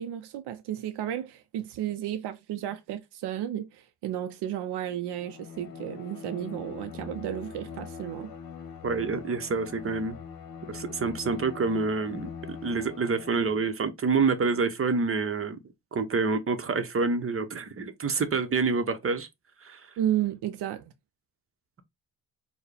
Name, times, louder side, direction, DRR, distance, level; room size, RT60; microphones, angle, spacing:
voice 1, 0.0-8.3 20.0-20.9, right 11 dB, 75° right, 0.6 m, -33 dB
Bowed string instrument, 5.2-13.7, left 6 dB, 60° left, 1.0 m, -42 dB
voice 2, 8.8-10.2 10.7-15.6 15.9-19.3 19.6-19.9, right 4 dB, 30° right, 0.8 m, -27 dB
4.6 x 2.2 x 3.3 m
cardioid pair, 85°, 41 cm